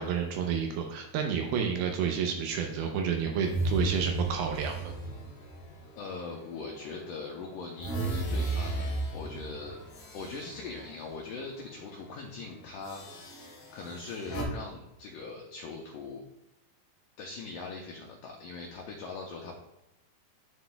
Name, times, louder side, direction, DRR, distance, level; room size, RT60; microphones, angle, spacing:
voice 1, 0.0-4.9, right 7 dB, 80° right, 3 dB, 2.4 m, -30 dB
sound 1, 3.4-6.7 7.2-11.5 11.8-12.0 12.8-14.4, right 2 dB, 55° left, 3.2 m, -35 dB
voice 2, 5.9-8.9 9.1-9.8 10.1-13.0 13.4-16.3 17.2-19.5, left 4 dB, 85° left, -1 dB, 1.9 m, -41 dB
11.5 x 4.2 x 2.3 m, 0.90 s
omnidirectional pair, 4.8 m